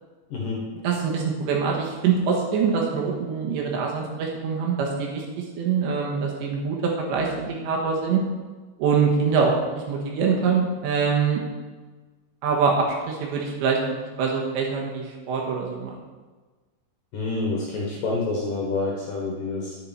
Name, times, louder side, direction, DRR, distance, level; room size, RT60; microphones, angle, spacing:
voice 1, 0.3-0.7 17.1-19.8, left 3 dB, 60° left, -3 dB, 2.4 m, -28 dB
voice 2, 0.8-8.2 8.8-9.5 9.9-11.4 12.4-13.8 14.2-16.0, right 5 dB, 70° right, -1 dB, 3.4 m, -24 dB
11.0 x 9.6 x 4.6 m, 1.3 s
omnidirectional pair, 5.7 m